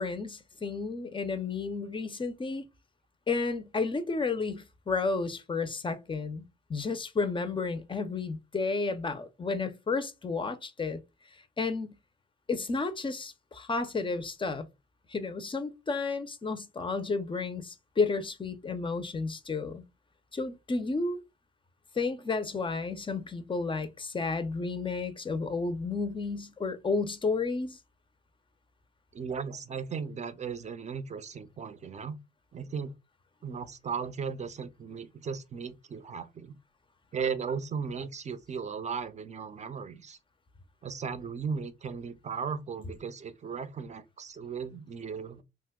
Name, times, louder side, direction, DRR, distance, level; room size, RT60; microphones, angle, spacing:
voice 1, 0.0-2.6 3.3-6.4 6.7-11.0 11.6-12.0 12.5-14.7 15.1-19.8 20.3-21.2 22.0-27.8, left 4 dB, 25° left, 0.5 m, -32 dB
voice 2, 29.1-32.2 32.5-32.9 33.4-36.6 37.1-40.2 40.8-45.4, right 6 dB, 35° right, 0.5 m, -36 dB
2.9 x 2.1 x 3.4 m
cardioid pair, 90°, 20 cm